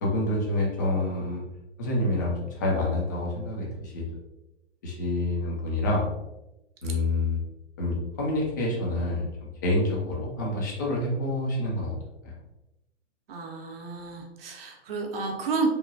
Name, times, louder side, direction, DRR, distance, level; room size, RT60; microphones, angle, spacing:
voice 1, 0.0-1.4 1.8-4.0 4.8-6.1 6.8-7.4 7.8-11.9 12.2-12.3, left 1 dB, 20° left, -3 dB, 0.3 m, -27 dB
voice 2, 13.3-15.7, right 4 dB, 55° right, 2 dB, 0.7 m, -31 dB
2.9 x 2.2 x 2.4 m, 0.94 s
figure-of-eight pair, 120°, 36 cm